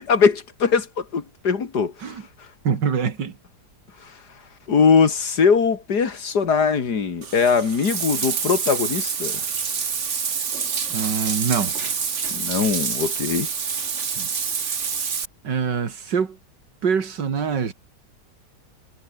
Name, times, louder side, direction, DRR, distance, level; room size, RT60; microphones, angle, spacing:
voice 1, 0.0-1.9 4.0-4.1 4.7-9.4 12.3-13.5, left 5 dB, 65° left, 2.6 m, -21 dB
voice 2, 2.6-3.4 10.9-11.7 14.2-14.3 14.6-14.9 15.4-16.4 16.8-17.7, right 6 dB, 75° right, 2.7 m, -24 dB
Bathtub (filling or washing), 7.2-15.2, right 6 dB, 45° right, 1.7 m, -27 dB
omnidirectional pair, 1.9 m